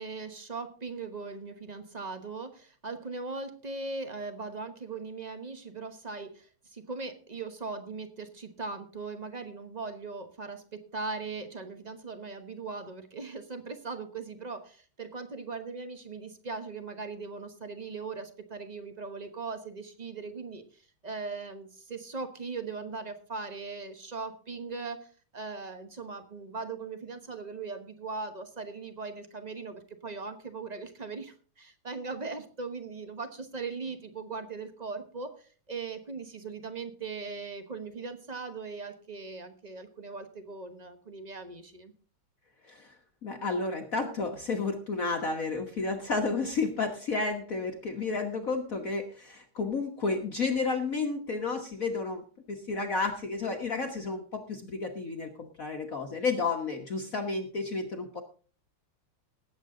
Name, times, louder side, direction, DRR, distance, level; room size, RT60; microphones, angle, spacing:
voice 1, 0.0-41.9, right 4 dB, 30° right, 8 dB, 0.7 m, -39 dB
voice 2, 43.2-58.2, left 4 dB, 45° left, 3 dB, 1.5 m, -31 dB
18.5 x 8.3 x 3.8 m, 0.40 s
omnidirectional pair, 2.4 m